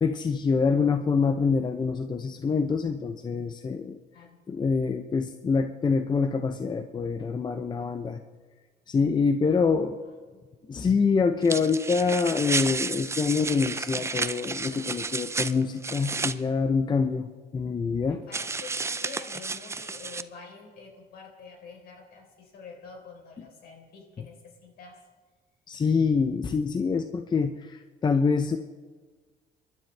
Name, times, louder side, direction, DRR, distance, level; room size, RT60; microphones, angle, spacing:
voice 1, 0.0-4.0 4.5-8.2 8.9-9.9 10.7-18.2 25.7-28.6, left 5 dB, 25° left, 8 dB, 0.7 m, -25 dB
voice 2, 9.5-10.4 18.1-25.0, left 4 dB, 65° left, 2 dB, 3.9 m, -47 dB
sound 1, 11.4-16.3 18.3-20.2, right 4 dB, 15° right, 0.5 m, -32 dB
27.5 x 12.0 x 3.4 m, 1.4 s
cardioid pair, 110°, 17 cm